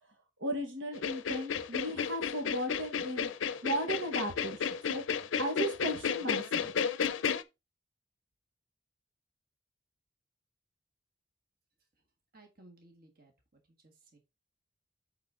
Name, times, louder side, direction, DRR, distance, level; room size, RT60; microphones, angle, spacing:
voice 1, 0.4-3.3 3.6-5.0 5.4-6.7, right 1 dB, 85° right, 5 dB, 1.4 m, -36 dB
sound 1, 0.9-7.4, left 7 dB, 85° left, 0.5 m, -32 dB
voice 2, 12.3-14.2, right 2 dB, 50° right, 4 dB, 1.5 m, -59 dB
8.3 x 3.9 x 3.8 m, 0.25 s
head